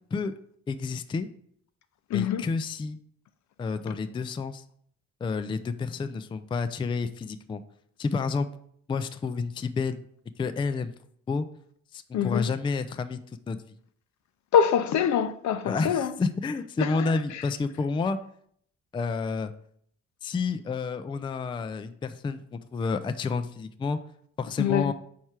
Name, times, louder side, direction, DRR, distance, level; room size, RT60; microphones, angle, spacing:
voice 1, 0.7-1.3 2.1-3.0 3.6-4.6 5.2-7.6 8.0-8.5 8.9-10.0 10.4-10.9 11.3-11.5 11.9-13.2 13.5-13.6 15.6-18.2 18.9-19.5 20.2-24.0 24.4-24.9, left 4 dB, 15° left, 0.3 m, -30 dB
voice 2, 2.1-2.5 12.1-12.5 14.5-16.1 16.8-17.4 24.6-24.9, left 8 dB, 65° left, 0.6 m, -25 dB
4.6 x 4.3 x 4.6 m
cardioid pair, 90°, 30 cm